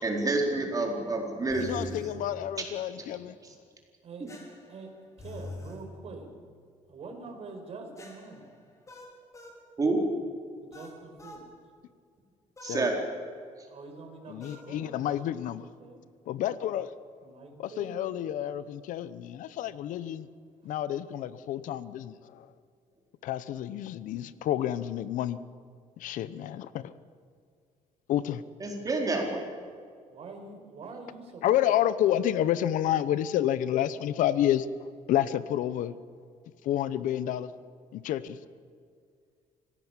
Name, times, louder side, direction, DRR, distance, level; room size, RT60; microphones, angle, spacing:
voice 1, 0.0-2.0 2.6-2.7 3.0-3.1 4.2-4.3 9.8-10.0 12.6-13.0 28.6-29.4, right 2 dB, 25° right, 1 dB, 4.4 m, -28 dB
sound 1, 1.5-2.1 4.3-5.8 8.0-9.6 10.7-11.5 12.6-12.9 14.4-14.7, left 3 dB, 25° left, 4.1 m, -45 dB
voice 2, 1.6-3.3 12.6-12.9 14.3-15.7 16.3-16.9 17.6-20.3 20.6-22.5 23.2-25.4 26.0-26.9 28.1-28.4 31.4-34.7 35.1-36.0 36.6-37.5 37.9-38.4, left 11 dB, 80° left, 15 dB, 0.9 m, -29 dB
voice 3, 5.2-6.3 6.9-8.4 10.6-11.5 13.7-16.0 17.2-17.9 30.1-31.7, right 3 dB, 50° right, 3 dB, 5.1 m, -45 dB
25.5 x 17.5 x 7.4 m, 2.1 s
cardioid pair, 125°, 13 cm